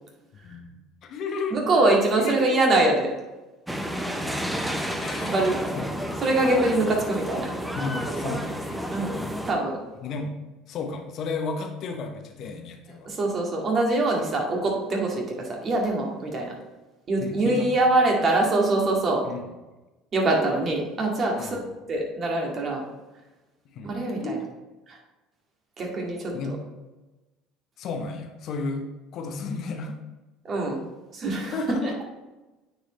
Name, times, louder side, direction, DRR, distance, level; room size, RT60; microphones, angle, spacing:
voice 1, 0.4-1.6 2.2-2.6 5.0-5.5 5.7-6.2 7.7-9.4 10.0-10.4 10.7-13.1 17.2-17.9 18.2-18.3 19.3-19.4 21.4-21.7 23.7-23.9 24.2-24.4 26.3-26.5 27.8-30.0 31.5-32.0, left 3 dB, 50° left, 4 dB, 1.1 m, -33 dB
voice 2, 1.5-3.1 5.3-5.6 6.2-7.5 8.1-8.2 8.9-9.2 9.5-9.8 13.0-16.5 17.1-19.2 20.1-22.8 23.8-24.4 24.9-25.0 25.8-26.6 30.4-30.9 31.1-31.5, right 2 dB, 40° right, -1 dB, 2.2 m, -24 dB
sound 1, 3.7-9.5, equal, 5° right, 0.8 m, -31 dB
9.1 x 4.9 x 3.3 m, 1.1 s
hypercardioid pair, 65°, 0 cm